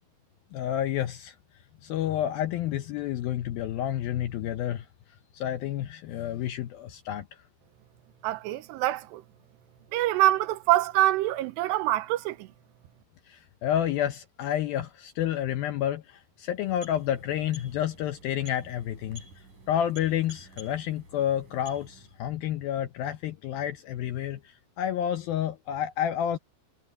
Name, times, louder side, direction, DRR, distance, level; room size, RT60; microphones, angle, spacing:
voice 1, 0.5-1.4 1.8-4.9 5.3-7.3 13.3-19.2 19.7-26.4, left 10 dB, 75° left, 2.3 m, -30 dB
voice 2, 8.2-9.2 9.9-12.4, right 15 dB, 85° right, 2.9 m, -25 dB
sound 1, 16.5-22.3, equal, 45° right, 6.6 m, -51 dB
omnidirectional pair, 5.0 m